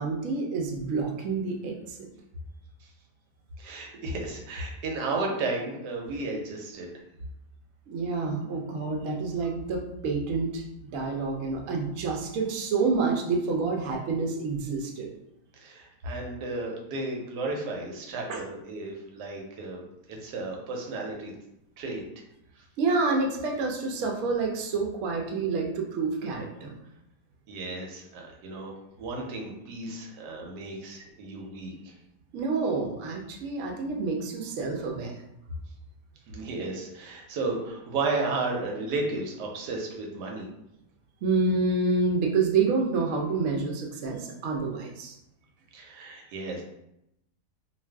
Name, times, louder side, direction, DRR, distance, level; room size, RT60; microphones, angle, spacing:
voice 1, 0.0-2.1 7.9-10.6 10.9-15.1 18.3-18.4 22.8-26.7 32.3-35.1 41.2-45.1, right 4 dB, 65° right, 1 dB, 0.8 m, -28 dB
voice 2, 3.6-6.9 15.6-21.3 21.8-22.0 22.6-22.7 27.5-28.7 29.0-31.9 36.3-40.5 45.7-46.6, right 3 dB, 80° right, 0 dB, 1.2 m, -33 dB
2.5 x 2.4 x 3.3 m, 0.82 s
omnidirectional pair, 1.8 m